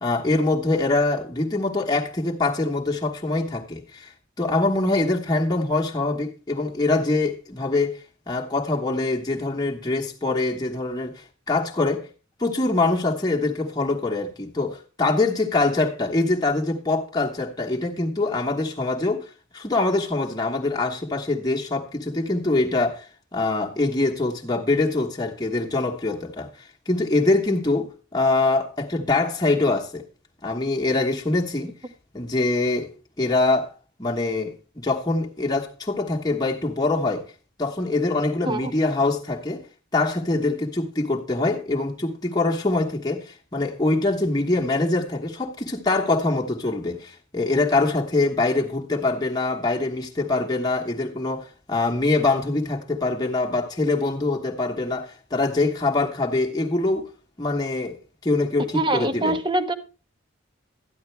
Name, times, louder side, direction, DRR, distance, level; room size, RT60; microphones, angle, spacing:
voice 1, 0.0-12.1 12.4-30.0 30.4-31.8 32.1-32.9 33.2-33.7 34.0-37.2 37.6-39.6 39.9-57.1 57.4-59.4, left 2 dB, 20° left, 1.3 m, -24 dB
voice 2, 58.7-59.7, right 2 dB, 25° right, 1.0 m, -24 dB
13.0 x 10.5 x 3.3 m
head